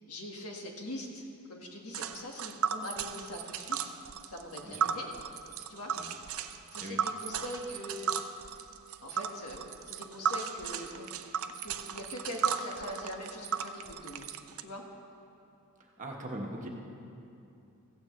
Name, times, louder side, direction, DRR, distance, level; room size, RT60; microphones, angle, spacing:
voice 1, 0.0-3.8 4.3-5.1 5.7-5.9 6.2-8.1 9.0-11.1 11.6-14.3 14.6-14.8, left 1 dB, 85° left, 0 dB, 1.7 m, -42 dB
Tick, 1.9-14.6, right 7 dB, 65° right, 0.5 m, -35 dB
voice 2, 15.8-16.7, right 1 dB, 35° right, -1 dB, 1.3 m, -41 dB
16.0 x 14.5 x 3.3 m, 2.7 s
head